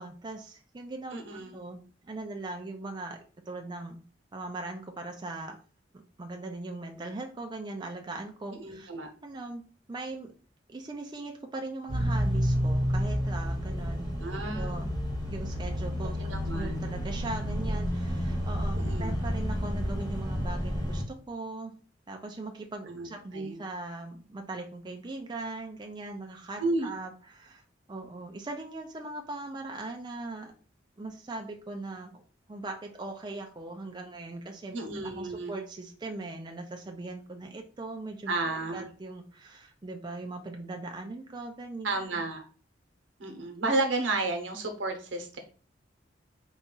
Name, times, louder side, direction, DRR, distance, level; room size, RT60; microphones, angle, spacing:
voice 1, 0.0-3.2 3.5-4.0 4.3-5.6 5.9-8.9 9.2-9.6 9.9-10.3 10.7-14.1 14.5-14.9 15.2-21.7 22.1-27.6 27.9-30.5 31.0-32.2 32.5-34.8 35.0-38.3 38.7-41.9 42.2-42.3, right 2 dB, 25° right, 3 dB, 0.4 m, -40 dB
voice 2, 1.1-1.6 8.6-9.1 14.2-14.8 16.2-16.7 18.7-19.1 22.9-23.1 23.3-23.6 26.6-26.9 34.7-35.6 38.3-38.9 41.8-42.4 43.2-45.4, right 2 dB, 80° right, 4 dB, 0.9 m, -32 dB
sound 1, 11.9-21.0, equal, 20° left, 1.1 m, -30 dB
4.0 x 2.3 x 3.8 m, 0.40 s
head